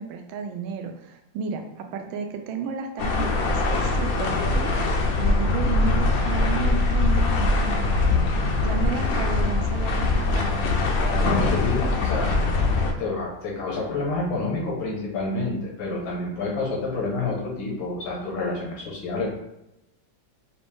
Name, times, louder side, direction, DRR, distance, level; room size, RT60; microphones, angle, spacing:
voice 1, 0.0-4.8 5.2-10.7, right 5 dB, 85° right, 5 dB, 1.4 m, -33 dB
sound 1, 3.0-12.9, left 3 dB, 65° left, 0.9 m, -22 dB
voice 2, 11.0-12.4 13.0-19.3, left 3 dB, 85° left, -3 dB, 2.0 m, -29 dB
5.3 x 2.6 x 3.5 m, 0.87 s
omnidirectional pair, 2.1 m